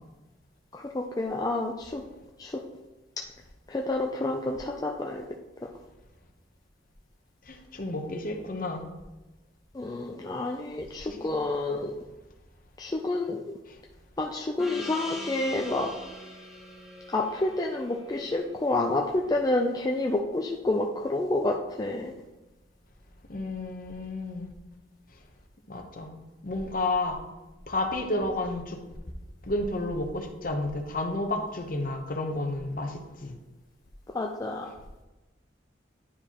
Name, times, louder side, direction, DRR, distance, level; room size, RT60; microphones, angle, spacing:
voice 1, 0.7-2.0 2.4-2.6 3.7-5.3 9.7-11.9 12.8-13.4 14.2-15.9 17.1-22.1 34.1-34.7, left 2 dB, 20° left, 0 dB, 0.3 m, -29 dB
voice 2, 7.5-8.8 11.0-11.2 13.7-13.8 23.3-24.5 25.7-26.1 26.4-27.2 27.7-28.8 29.4-33.3, left 2 dB, 45° left, 4 dB, 0.8 m, -31 dB
Gong, 14.6-19.6, left 1 dB, 5° right, 1.3 m, -44 dB
9.7 x 4.8 x 2.9 m, 1.1 s
head